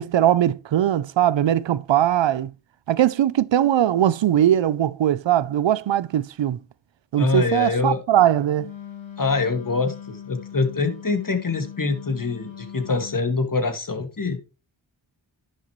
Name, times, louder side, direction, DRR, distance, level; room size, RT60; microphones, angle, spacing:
voice 1, 0.0-2.5 2.9-6.6 7.1-8.7, right 11 dB, 70° right, 0.6 m, -20 dB
voice 2, 7.2-8.0 9.2-14.5, left 4 dB, 45° left, 2.1 m, -24 dB
Wind instrument woodwind instrument, 8.5-13.3, left 9 dB, 80° left, 2.2 m, -40 dB
11.0 x 6.8 x 3.1 m
cardioid pair, 45°, 47 cm